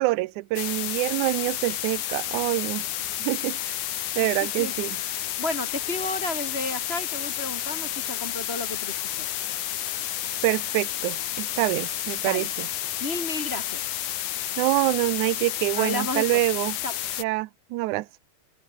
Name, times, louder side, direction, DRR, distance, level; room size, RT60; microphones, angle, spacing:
voice 1, 0.0-2.9 3.2-3.8 4.2-5.0 10.4-12.7 14.6-16.8 17.2-18.1, right 20 dB, 85° right, 1.7 m, -26 dB
sound 1, 0.6-17.2, left 12 dB, 65° left, 2.7 m, -31 dB
voice 2, 4.2-4.7 5.4-9.0 12.2-12.5 13.0-13.8 15.8-16.4 16.8-16.9, left 2 dB, 20° left, 1.7 m, -32 dB
omnidirectional pair, 4.2 m